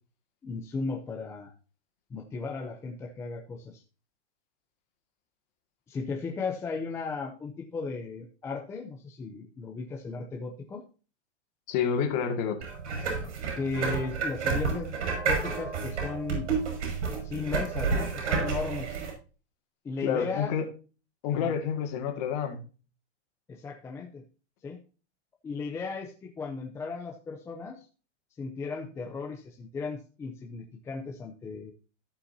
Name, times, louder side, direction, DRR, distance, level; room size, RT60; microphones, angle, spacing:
voice 1, 0.4-1.5 2.1-3.8 5.9-10.8 13.5-14.9 15.2-16.5 17.1-18.9 19.8-20.5 21.3-21.5 23.5-24.2 24.6-24.8 25.4-27.8 28.4-31.7, left 4 dB, 10° left, 1 dB, 0.6 m, -36 dB
voice 2, 11.7-12.7 20.0-20.7 21.2-22.6, left 7 dB, 35° left, 5 dB, 2.2 m, -29 dB
sound 1, 12.6-19.1, right 5 dB, 70° right, 6.3 m, -30 dB
17.0 x 5.7 x 2.7 m, 0.35 s
supercardioid pair, 165°, 35 cm